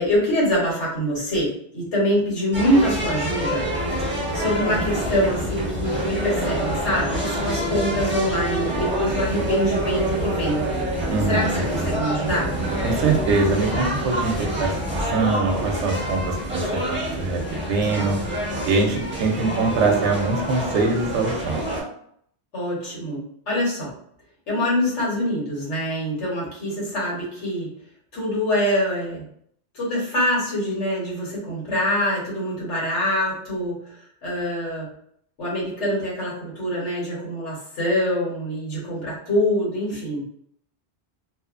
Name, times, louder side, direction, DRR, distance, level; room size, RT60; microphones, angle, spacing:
voice 1, 0.0-3.6 4.0-4.1 4.3-10.6 11.2-12.5 22.5-23.9 24.5-27.7 28.1-29.2 29.7-33.7 34.2-34.9 35.4-40.2, equal, 85° left, -5 dB, 1.4 m, -24 dB
sound 1, 2.5-21.8, right 1 dB, 10° right, 0.8 m, -26 dB
voice 2, 11.1-11.6 12.8-14.7 15.1-18.2 18.6-21.6, right 3 dB, 85° right, 2 dB, 0.9 m, -23 dB
2.8 x 2.1 x 2.4 m, 0.67 s
omnidirectional pair, 1.2 m